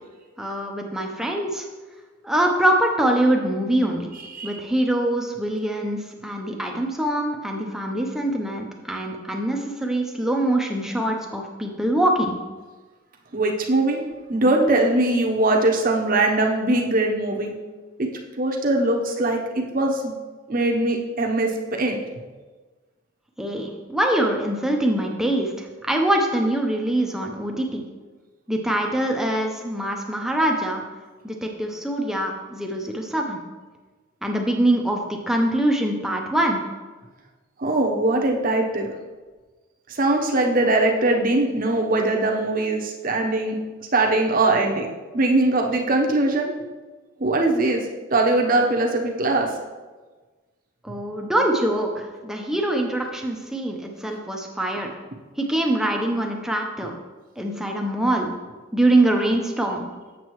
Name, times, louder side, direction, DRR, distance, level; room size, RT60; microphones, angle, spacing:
voice 1, 0.4-1.7 2.2-4.1 4.4-12.4 23.4-27.8 28.5-30.8 31.2-33.4 34.2-36.6 50.8-54.9 55.4-56.9 57.4-58.4 58.7-59.9, right 1 dB, ahead, 1 dB, 0.7 m, -23 dB
voice 2, 13.3-14.0 14.3-17.5 18.0-18.1 18.4-20.0 20.5-22.0 37.6-38.9 39.9-43.6 43.9-44.9 45.1-46.5 47.2-47.8 48.1-49.5, right 2 dB, 40° right, 1 dB, 0.9 m, -21 dB
7.5 x 7.3 x 3.1 m, 1.3 s
head